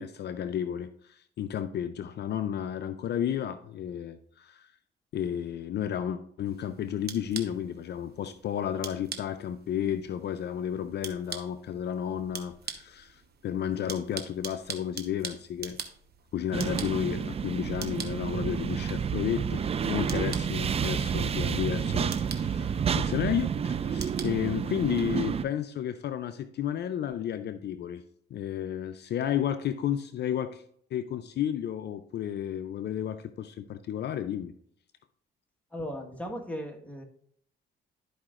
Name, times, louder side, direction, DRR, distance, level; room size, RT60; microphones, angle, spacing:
voice 1, 0.0-4.7 5.1-15.8 16.3-28.0 28.3-30.6 30.9-34.5, left 9 dB, 60° left, 10 dB, 0.5 m, -32 dB
sound 1, 6.4-25.2, right 6 dB, 55° right, 1.1 m, -45 dB
sound 2, 16.5-25.4, right 7 dB, 30° right, 0.3 m, -30 dB
voice 2, 35.7-37.0, equal, 5° left, 1 dB, 1.4 m, -37 dB
12.5 x 4.9 x 2.5 m, 0.66 s
cardioid pair, 90°, 20 cm